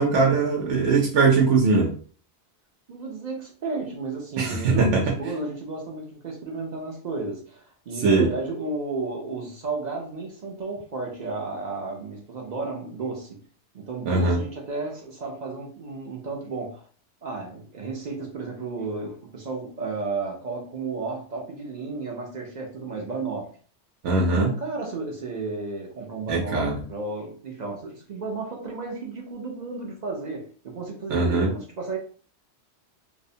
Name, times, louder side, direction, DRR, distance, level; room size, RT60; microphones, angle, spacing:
voice 1, 0.0-1.9 4.4-5.1 8.0-8.3 14.0-14.4 24.0-24.5 26.3-26.7 31.1-31.5, right 3 dB, 85° right, -2 dB, 0.9 m, -21 dB
voice 2, 2.9-13.4 13.7-16.9 17.2-23.5 24.3-32.0, right 3 dB, 55° right, 0 dB, 0.5 m, -33 dB
2.7 x 2.1 x 2.6 m, 0.43 s
omnidirectional pair, 1.2 m